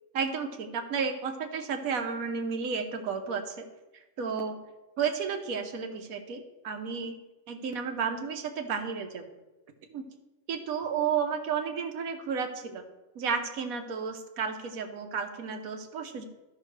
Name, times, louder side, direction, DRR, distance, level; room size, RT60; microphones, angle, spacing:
voice 1, 0.1-3.7 4.2-4.6 5.0-7.2 7.5-9.3 9.9-10.1 10.5-12.8 13.2-16.3, right 6 dB, 85° right, 6 dB, 1.3 m, -32 dB
13.5 x 5.7 x 3.2 m, 1.1 s
omnidirectional pair, 1.5 m